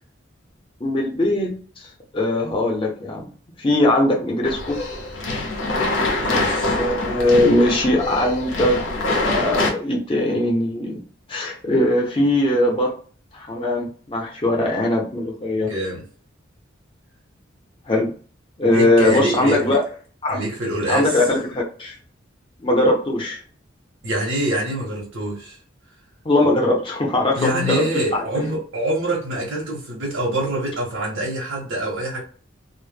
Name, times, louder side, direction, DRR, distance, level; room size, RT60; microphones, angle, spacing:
voice 1, 0.8-1.9 2.1-3.3 3.6-4.8 6.6-8.8 9.1-11.0 11.3-12.9 13.3-15.7 17.9-18.1 18.6-19.8 20.2-20.4 20.9-22.0 22.6-23.4 26.2-27.8 28.1-28.5, left 1 dB, 25° left, 0.6 m, -20 dB
sound 1, 4.4-9.7, left 2 dB, 75° left, 0.6 m, -24 dB
voice 2, 6.2-6.8 15.7-16.0 18.7-19.8 20.3-21.2 24.0-25.6 27.4-32.2, right 1 dB, 80° right, 0.7 m, -25 dB
2.0 x 2.0 x 3.1 m
head